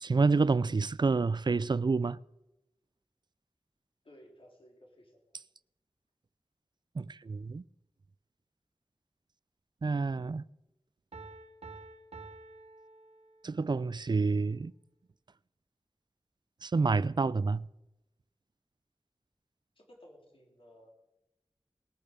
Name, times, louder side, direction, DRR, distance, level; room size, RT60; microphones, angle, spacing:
voice 1, 0.0-2.2 7.0-7.6 9.8-10.4 13.4-14.7 16.6-17.6, right 4 dB, 45° right, 0.4 m, -28 dB
voice 2, 4.0-5.4 19.8-20.9, equal, 65° left, 3.8 m, -57 dB
Piano, 11.1-13.7, right 3 dB, 85° right, 1.5 m, -50 dB
20.0 x 6.8 x 6.8 m
wide cardioid pair, 45°, 10 cm